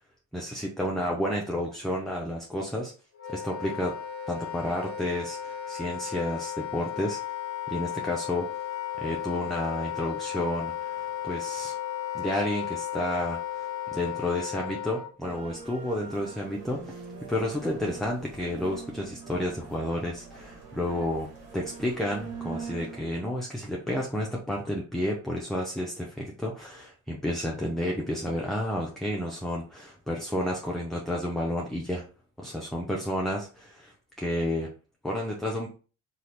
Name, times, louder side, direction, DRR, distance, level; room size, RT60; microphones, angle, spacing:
voice 1, 0.3-2.9 3.3-3.9 4.3-7.2 7.7-8.5 9.0-11.8 12.1-17.0 17.3-21.3 21.5-32.1 32.4-33.9 34.2-34.7 35.0-35.7, left 1 dB, ahead, -1 dB, 0.6 m, -31 dB
Wind instrument woodwind instrument, 3.1-15.1, left 10 dB, 50° left, 0.7 m, -35 dB
sound 1, 15.2-23.0, right 5 dB, 75° right, 1.4 m, -43 dB
2.7 x 2.5 x 3.3 m, 0.37 s
hypercardioid pair, 60°, 37 cm